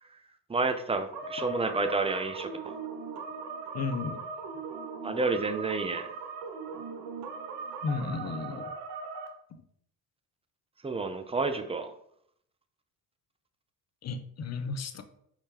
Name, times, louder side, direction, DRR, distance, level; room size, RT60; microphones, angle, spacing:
voice 1, 0.5-2.8 5.0-6.1 10.8-11.9, right 3 dB, 15° right, 7 dB, 0.5 m, -30 dB
sound 1, 1.1-9.3, right 4 dB, 70° right, 0.9 m, -39 dB
voice 2, 3.7-4.2 7.8-8.7 14.0-15.0, left 4 dB, 40° left, 9 dB, 0.6 m, -33 dB
4.4 x 3.7 x 2.9 m, 0.69 s
supercardioid pair, 70°, 42 cm